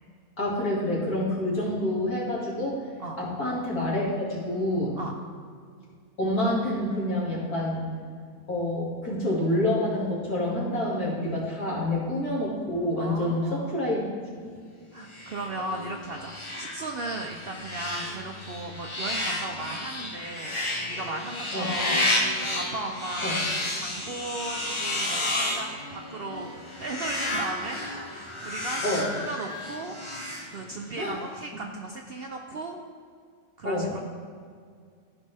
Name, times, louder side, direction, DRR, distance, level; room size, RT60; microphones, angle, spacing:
voice 1, 0.4-2.8 3.2-5.0 6.2-7.9 8.5-14.1 21.5-21.8 23.2-23.4 28.8-29.1 31.0-31.2 33.6-33.9, left 1 dB, 80° left, -5 dB, 2.7 m, -27 dB
voice 2, 13.0-13.8 14.9-23.4 23.7-28.9 29.2-30.0 30.5-32.8 33.6-34.0, right 2 dB, 60° right, 2 dB, 0.6 m, -36 dB
sound 1, 15.1-31.0, left 1 dB, 25° left, 0.9 m, -32 dB
14.0 x 5.3 x 3.4 m, 2.1 s
omnidirectional pair, 1.6 m